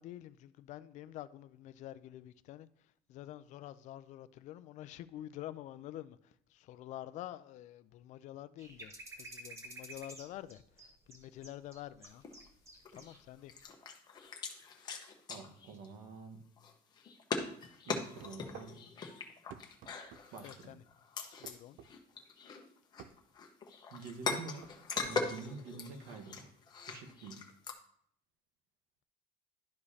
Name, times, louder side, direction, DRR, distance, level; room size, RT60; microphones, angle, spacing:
voice 1, 0.0-2.7 3.1-8.9 9.2-12.2 12.9-13.5 20.4-20.8 21.4-21.8, left 13 dB, 55° left, 0.4 m, -48 dB
sound 1, 8.6-13.2 13.5-13.6, right 2 dB, 20° right, 1.0 m, -51 dB
sound 2, 12.0-12.5 12.8-13.2 13.5-16.2 16.6-21.6 21.8-27.7, left 5 dB, 30° left, 0.9 m, -41 dB
voice 2, 15.3-16.4 17.9-18.8 20.3-20.8 23.9-26.6 26.9-27.5, right 4 dB, 90° right, 1.3 m, -48 dB
sound 3, 18.2-18.7 19.5-20.3 21.4-21.9 23.0-23.2 24.3-25.1, right 9 dB, 60° right, 0.5 m, -52 dB
11.5 x 5.0 x 2.8 m
cardioid pair, 170°, 15 cm